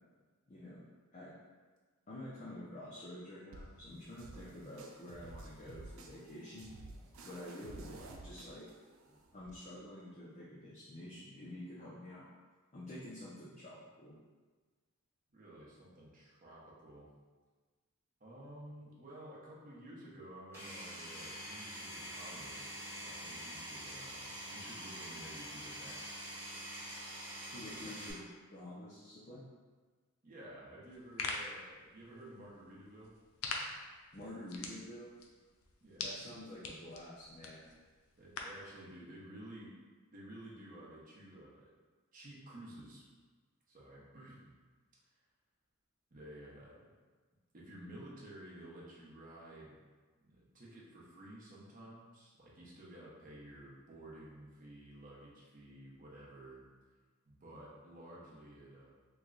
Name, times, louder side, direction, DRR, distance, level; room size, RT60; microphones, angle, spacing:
voice 1, 0.5-0.8 1.1-1.3 2.1-6.7 7.2-7.9 8.2-8.7 9.1-12.3 12.7-14.1 27.5-28.2 28.5-29.4 34.1-35.2 36.0-37.7, left 1 dB, 35° left, -8 dB, 0.5 m, -48 dB
sound 1, 3.5-9.5, right 2 dB, 75° right, 0.4 m, -52 dB
voice 2, 15.3-17.1 18.2-22.7 23.0-26.0 27.6-28.3 30.2-33.1 35.8-36.1 38.2-39.7 40.1-41.7 42.1-43.0 43.7-44.5 46.1-46.8 47.5-49.8 50.2-56.7 57.3-58.9, right 1 dB, 40° right, -5 dB, 0.7 m, -52 dB
Power tool, 20.5-28.1, equal, 10° right, 1.2 m, -45 dB
sound 2, 30.8-38.7, left 3 dB, 90° left, 0.4 m, -45 dB
3.1 x 2.2 x 3.8 m, 1.4 s
head